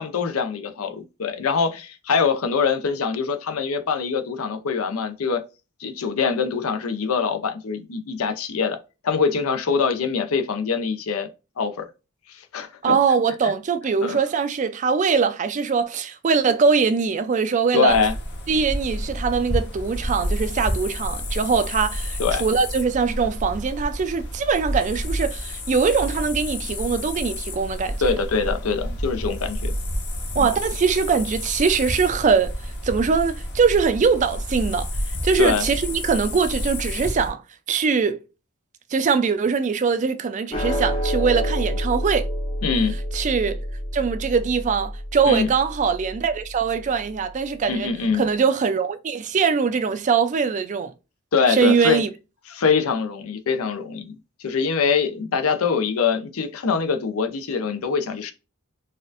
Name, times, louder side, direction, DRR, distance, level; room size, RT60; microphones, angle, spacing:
voice 1, 0.0-5.4 5.8-8.8 9.0-11.3 11.6-11.9 12.3-12.9 14.0-14.2 17.7-18.1 22.2-22.4 28.0-29.7 30.4-30.5 35.4-35.7 42.6-42.9 45.3-45.5 47.7-48.2 51.3-52.0 52.5-58.3, left 5 dB, 85° left, 0.5 m, -23 dB
voice 2, 12.8-18.0 18.5-28.0 30.3-34.9 35.2-37.4 37.7-38.2 38.9-42.3 43.1-43.6 43.9-50.9 51.5-52.1, right 5 dB, 35° right, 0.4 m, -22 dB
sound 1, 17.9-37.3, equal, 55° left, 1.0 m, -30 dB
sound 2, 40.5-47.1, equal, 25° left, 0.6 m, -28 dB
4.1 x 2.5 x 2.4 m
head